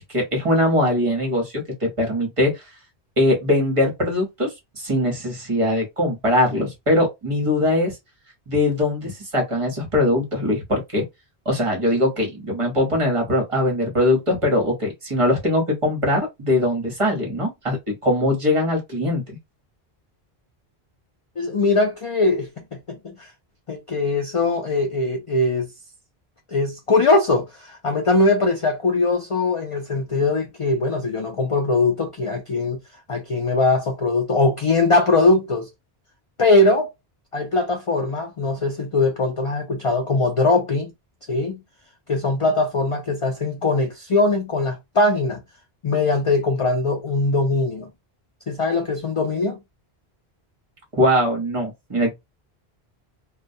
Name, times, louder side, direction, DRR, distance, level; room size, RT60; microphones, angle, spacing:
voice 1, 0.1-2.6 3.2-8.0 8.5-11.0 11.4-19.4 50.9-52.1, left 1 dB, 35° right, 0.9 m, -21 dB
voice 2, 21.4-23.3 23.7-25.7 26.5-32.8 33.1-35.7 36.4-36.9 37.3-40.9 41.3-41.6 42.1-45.4 45.8-47.9 48.5-49.6, left 2 dB, 50° left, 0.4 m, -21 dB
2.2 x 2.1 x 2.6 m
omnidirectional pair, 1.1 m